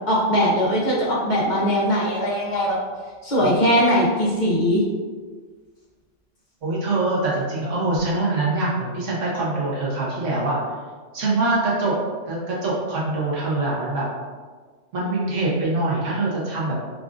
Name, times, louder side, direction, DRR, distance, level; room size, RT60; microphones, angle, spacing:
voice 1, 0.1-2.8 3.2-4.8, equal, 45° left, -5 dB, 0.7 m, -20 dB
voice 2, 6.6-10.6 11.1-11.9 12.2-14.0 14.9-16.8, right 2 dB, 80° right, -6 dB, 1.4 m, -24 dB
5.1 x 2.4 x 2.4 m, 1.5 s
omnidirectional pair, 1.2 m